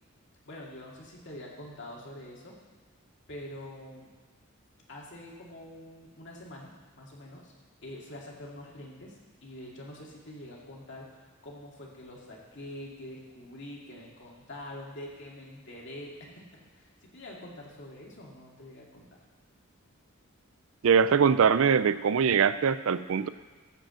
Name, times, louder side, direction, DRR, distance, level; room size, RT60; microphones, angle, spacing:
voice 1, 0.4-2.6 3.3-4.1 4.9-6.7 7.0-7.5 7.8-16.3 16.8-19.2, left 1 dB, 55° left, -2 dB, 2.4 m, -45 dB
voice 2, 20.8-23.3, right 6 dB, 70° right, 14 dB, 0.4 m, -22 dB
14.0 x 5.1 x 7.5 m, 1.4 s
head